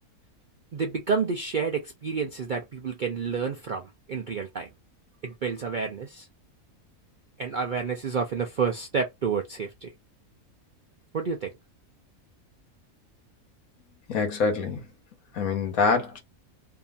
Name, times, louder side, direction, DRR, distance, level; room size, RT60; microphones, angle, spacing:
voice 1, 0.7-3.8 4.1-4.7 5.2-6.3 7.4-9.9 11.1-11.5, right 5 dB, 60° right, 0.5 m, -29 dB
voice 2, 14.1-14.8 15.3-16.2, left 4 dB, 80° left, 1.4 m, -25 dB
2.7 x 2.7 x 2.3 m
omnidirectional pair, 1.5 m